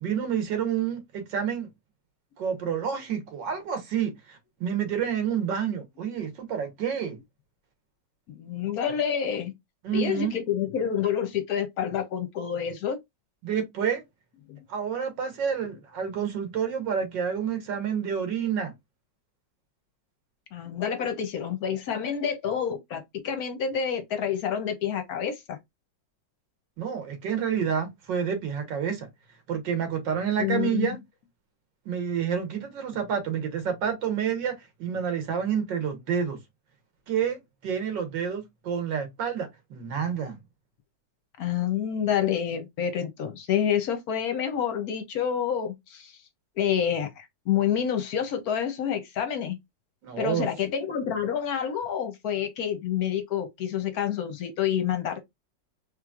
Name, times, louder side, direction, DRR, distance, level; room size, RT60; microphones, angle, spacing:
voice 1, 0.0-1.7 2.4-7.2 9.8-10.3 13.4-14.0 14.7-18.7 26.8-29.1 29.5-31.0 31.9-36.4 37.1-40.4 50.0-50.5, right 7 dB, 85° right, 1.8 m, -29 dB
voice 2, 8.3-9.5 9.9-13.0 14.5-14.6 20.5-25.6 30.4-30.9 41.4-46.2 46.6-49.6 50.2-55.2, left 8 dB, 65° left, 1.1 m, -28 dB
3.9 x 3.1 x 2.3 m
omnidirectional pair, 1.9 m